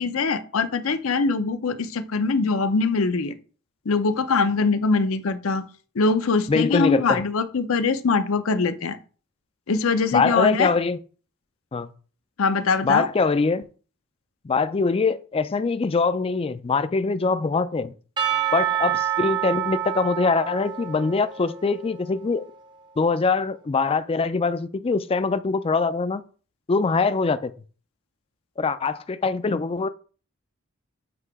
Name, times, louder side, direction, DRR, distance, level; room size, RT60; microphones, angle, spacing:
voice 1, 0.0-3.3 3.9-5.6 6.0-9.0 9.7-10.7 12.4-13.1, left 4 dB, 70° left, 0.6 m, -22 dB
voice 2, 6.5-7.2 10.1-11.0 11.7-11.9 12.8-13.6 14.4-17.9 18.5-22.4 23.0-26.2 26.7-27.5 28.6-29.9, left 4 dB, 25° left, 0.4 m, -23 dB
Percussion / Church bell, 18.2-22.5, right 10 dB, 20° right, 0.7 m, -28 dB
7.8 x 2.9 x 4.7 m
head